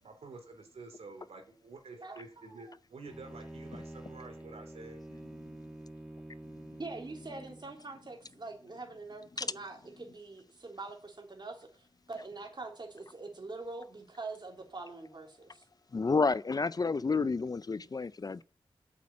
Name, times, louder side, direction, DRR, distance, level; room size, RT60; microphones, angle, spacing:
voice 1, 0.0-5.0, right 3 dB, 90° right, 2.9 m, -49 dB
voice 2, 1.9-2.7 6.8-15.7, right 3 dB, 50° right, 3.5 m, -44 dB
Bowed string instrument, 3.1-7.8, right 1 dB, 10° right, 2.2 m, -47 dB
voice 3, 15.9-18.4, left 4 dB, 40° left, 0.4 m, -30 dB
8.4 x 7.4 x 8.5 m
cardioid pair, 65°, 10 cm